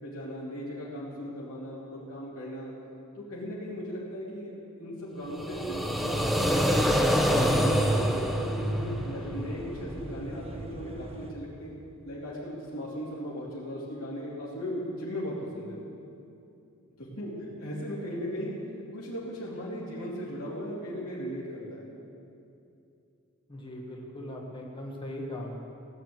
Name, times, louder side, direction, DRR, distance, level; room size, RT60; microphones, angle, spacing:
voice 1, 0.0-2.7 3.1-6.8 7.2-11.8 12.0-15.8 17.0-18.6 18.9-21.8, equal, 70° left, -7 dB, 3.3 m, -37 dB
sound 1, 5.3-9.3, equal, ahead, 0.9 m, -26 dB
sound 2, 6.1-11.3, right 1 dB, 25° right, 1.3 m, -34 dB
voice 2, 23.5-25.6, left 1 dB, 25° left, -1 dB, 1.6 m, -39 dB
16.5 x 9.2 x 8.0 m, 2.6 s
head